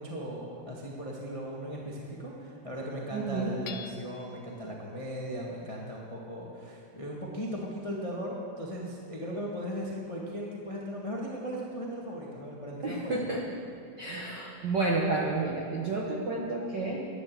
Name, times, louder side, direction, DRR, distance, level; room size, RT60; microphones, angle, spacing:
voice 1, 0.0-13.3, equal, 50° left, -3 dB, 0.4 m, -37 dB
voice 2, 3.1-3.6 12.8-13.4 14.0-17.1, right 3 dB, 70° right, -1 dB, 1.0 m, -30 dB
Hammer / Chink clink, 3.7-4.5, left 9 dB, 85° left, 2.1 m, -44 dB
11.5 x 10.5 x 7.5 m, 2.5 s
omnidirectional pair, 3.6 m